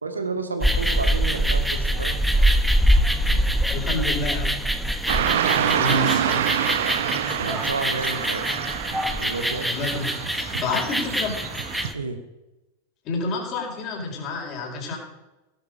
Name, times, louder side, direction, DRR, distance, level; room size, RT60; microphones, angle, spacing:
voice 1, 0.0-2.2 5.4-5.9 7.4-8.4 9.2-9.6 11.9-12.2, right 3 dB, 75° right, 6 dB, 1.9 m, -31 dB
sound 1, 0.6-11.9, equal, ahead, 1.2 m, -24 dB
voice 2, 3.7-4.6 5.7-6.7 9.6-11.4 13.0-15.0, left 3 dB, 35° left, 1 dB, 4.8 m, -30 dB
Car passing by / Traffic noise roadway noise, 5.1-11.9, right 10 dB, 60° right, 1.0 m, -26 dB
17.0 x 12.0 x 5.2 m, 1.0 s
figure-of-eight pair, 90°, 0 cm